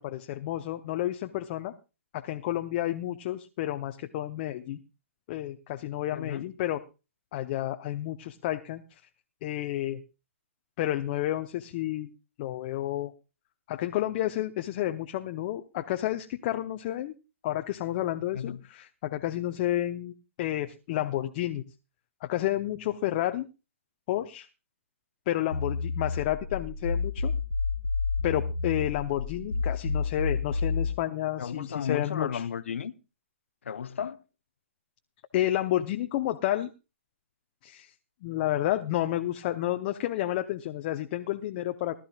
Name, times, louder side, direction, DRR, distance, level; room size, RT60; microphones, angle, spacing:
voice 1, 0.0-1.7 2.1-4.8 5.3-6.8 7.3-8.8 9.4-10.0 10.8-12.1 12.4-13.1 13.7-17.1 17.4-21.6 22.2-23.5 24.1-24.5 25.3-27.3 28.2-32.4 35.3-36.7 37.6-37.9 38.2-42.0, left 13 dB, 40° left, 0.9 m, -30 dB
voice 2, 6.1-6.4 18.3-18.6 31.4-32.9 33.6-34.2, left 7 dB, 65° left, 0.9 m, -33 dB
sound 1, 25.5-31.0, left 4 dB, 85° left, 1.6 m, -30 dB
20.0 x 12.5 x 2.4 m
figure-of-eight pair, 130°, 7 cm